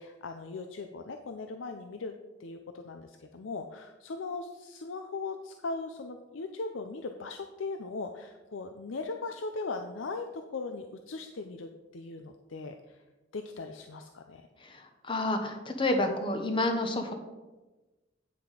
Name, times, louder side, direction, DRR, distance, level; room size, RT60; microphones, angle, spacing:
voice 1, 0.0-2.1 2.4-13.0 13.3-14.5, left 3 dB, 85° left, 6 dB, 0.6 m, -39 dB
voice 2, 14.6-17.1, left 2 dB, 25° left, 5 dB, 1.0 m, -29 dB
9.2 x 5.9 x 4.9 m, 1.1 s
head